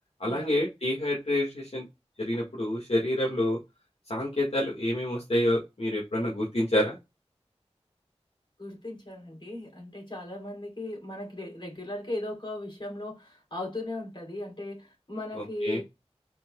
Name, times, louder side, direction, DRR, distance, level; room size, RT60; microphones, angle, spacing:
voice 1, 0.2-1.8 2.2-3.6 4.1-7.0 15.4-15.8, left 1 dB, 65° left, 1.6 m, -28 dB
voice 2, 8.6-15.8, left 1 dB, 45° left, 3.0 m, -37 dB
4.4 x 4.4 x 2.2 m
wide cardioid pair, 45°, 11 cm